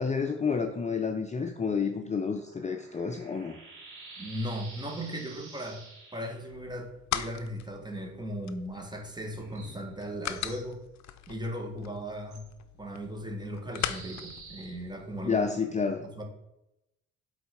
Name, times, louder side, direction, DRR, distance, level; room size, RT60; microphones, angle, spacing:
voice 1, 0.0-3.6 15.2-16.0, left 5 dB, 25° left, 4 dB, 0.6 m, -30 dB
sound 1, 2.0-6.5 9.2-10.7 12.3-12.4 13.7-15.7, right 3 dB, 85° right, 2.9 m, -50 dB
voice 2, 4.2-5.8 6.1-10.8 11.3-12.4 12.8-16.2, equal, 15° right, 4 dB, 1.5 m, -37 dB
sound 2, 6.5-15.4, left 11 dB, 65° left, 0.6 m, -40 dB
7.8 x 4.1 x 4.9 m, 0.86 s
cardioid pair, 90°, 30 cm